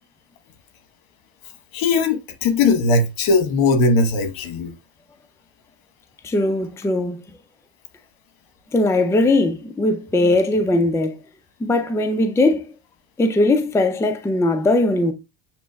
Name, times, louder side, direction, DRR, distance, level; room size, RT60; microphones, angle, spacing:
voice 1, 1.7-4.7, left 3 dB, 75° left, 1.3 m, -19 dB
voice 2, 6.2-7.2 8.7-11.2 11.6-12.7 13.2-15.1, left 2 dB, 5° left, 0.5 m, -19 dB
7.4 x 3.0 x 2.3 m
cardioid pair, 100°, 47 cm